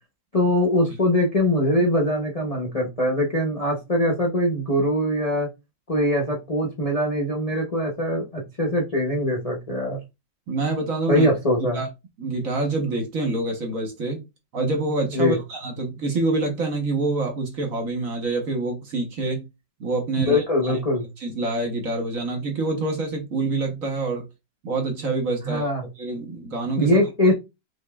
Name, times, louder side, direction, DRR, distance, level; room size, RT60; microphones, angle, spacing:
voice 1, 0.3-5.5 5.9-10.0 11.1-11.8 15.1-15.4 20.3-21.1 25.4-25.9 26.8-27.3, left 1 dB, 30° left, 0.7 m, -22 dB
voice 2, 10.5-11.3 11.7-11.9 12.2-14.2 14.5-19.4 19.8-20.8 21.2-24.2 24.6-25.7 26.0-27.1, right 3 dB, 50° right, 1.4 m, -26 dB
5.3 x 4.0 x 2.3 m
omnidirectional pair, 2.0 m